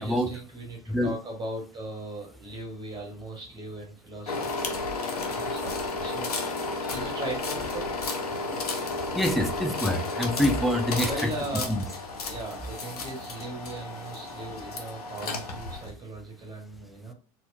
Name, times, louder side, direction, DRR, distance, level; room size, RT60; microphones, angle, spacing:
voice 1, 0.0-7.9 11.0-11.8 12.2-17.1, right 1 dB, 20° right, 0 dB, 1.0 m, -39 dB
sound 1, 4.3-15.9, left 3 dB, 75° left, 0.6 m, -32 dB
voice 2, 9.1-11.1 11.7-11.8, equal, ahead, 4 dB, 0.4 m, -25 dB
4.2 x 2.1 x 2.5 m, 0.38 s
figure-of-eight pair, 75°, 20 cm